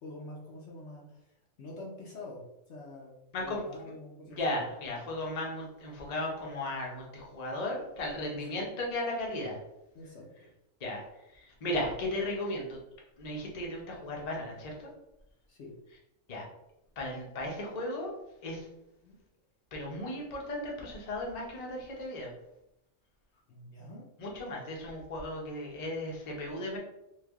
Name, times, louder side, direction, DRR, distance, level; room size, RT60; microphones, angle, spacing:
voice 1, 0.0-4.4 8.5-8.6 9.9-10.3 15.5-15.7 19.0-19.2 23.5-24.0, left 2 dB, 65° left, -3 dB, 1.0 m, -46 dB
voice 2, 4.2-9.6 10.8-11.0 11.3-12.8 13.2-14.9 16.3-16.4 17.0-18.1 18.4-18.7 19.7-22.3 24.2-26.8, left 1 dB, 35° left, -2 dB, 0.8 m, -35 dB
3.2 x 2.4 x 3.5 m, 0.86 s
omnidirectional pair, 1.4 m